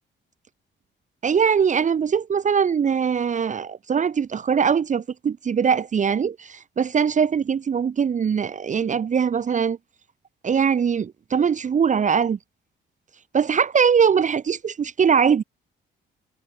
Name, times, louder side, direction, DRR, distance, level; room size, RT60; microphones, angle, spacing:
voice 1, 1.2-9.8 10.4-12.4 13.3-15.4, right 7 dB, 40° right, 0.8 m, -21 dB
cardioid pair, 90°, 20 cm